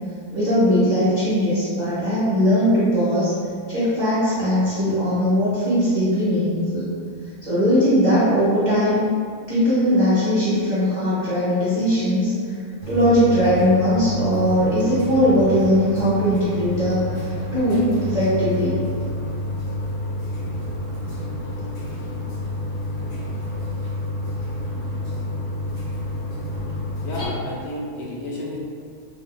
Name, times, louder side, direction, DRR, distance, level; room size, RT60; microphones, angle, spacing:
voice 1, 0.3-3.3 3.7-6.9 7.4-9.0 9.5-12.3 12.9-18.8, equal, 35° right, -13 dB, 0.8 m, -19 dB
sound 1, 12.8-27.3, left 1 dB, 30° left, 0.7 m, -29 dB
voice 2, 27.0-28.6, left 1 dB, 65° left, -4 dB, 0.7 m, -31 dB
2.6 x 2.5 x 3.7 m, 2.2 s
omnidirectional pair, 1.6 m